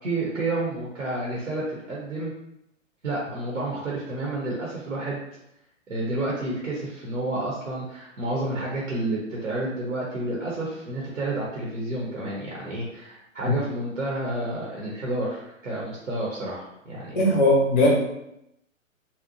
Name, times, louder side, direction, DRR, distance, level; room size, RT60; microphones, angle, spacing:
voice 1, 0.0-2.3 3.0-5.2 5.9-17.3, right 2 dB, 80° right, -4 dB, 0.7 m, -30 dB
voice 2, 17.2-17.9, left 1 dB, 35° left, -4 dB, 0.5 m, -19 dB
2.7 x 2.0 x 2.6 m, 0.83 s
figure-of-eight pair, 120°, 39 cm